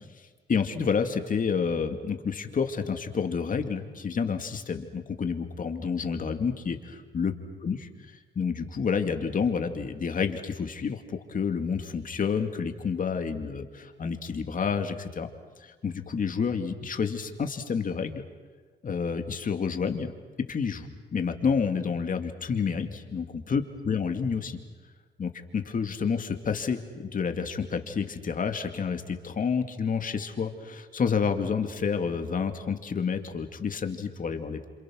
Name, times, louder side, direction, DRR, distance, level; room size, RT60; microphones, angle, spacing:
voice 1, 0.5-7.3 7.6-7.9 8.4-15.3 15.6-18.2 18.8-20.1 20.5-20.9 21.1-24.6 25.2-34.7, left 6 dB, 45° left, 6 dB, 2.4 m, -29 dB
28.0 x 27.0 x 6.4 m, 1.4 s
cardioid pair, 90°, 20 cm